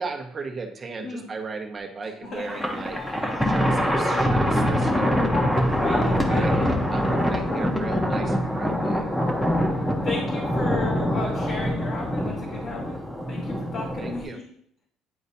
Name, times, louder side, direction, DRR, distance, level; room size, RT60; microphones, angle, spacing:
voice 1, 0.0-5.2 5.8-9.1 14.0-14.4, right 4 dB, 30° right, 2 dB, 1.1 m, -36 dB
sound 1, 1.8-4.3 4.6-9.8 10.1-11.9, left 3 dB, 75° left, 1.6 m, -41 dB
Thunder, 2.4-14.2, equal, 5° left, 1.0 m, -24 dB
voice 2, 5.8-6.5 10.0-13.0 13.3-14.4, left 4 dB, 55° left, -4 dB, 1.5 m, -34 dB
9.6 x 3.9 x 2.7 m, 0.67 s
cardioid pair, 120°, 0 cm